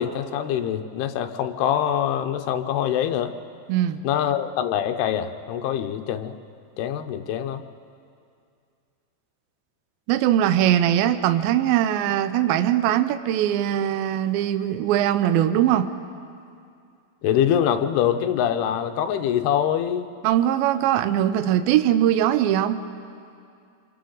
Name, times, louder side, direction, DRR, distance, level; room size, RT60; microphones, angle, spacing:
voice 1, 0.0-3.3 4.0-6.4 6.8-7.6 17.2-20.1, left 9 dB, 80° left, 7 dB, 2.8 m, -24 dB
voice 2, 3.7-4.0 10.1-15.9 20.2-22.8, right 11 dB, 75° right, 10 dB, 2.3 m, -21 dB
27.5 x 24.5 x 4.0 m, 2.4 s
omnidirectional pair, 4.7 m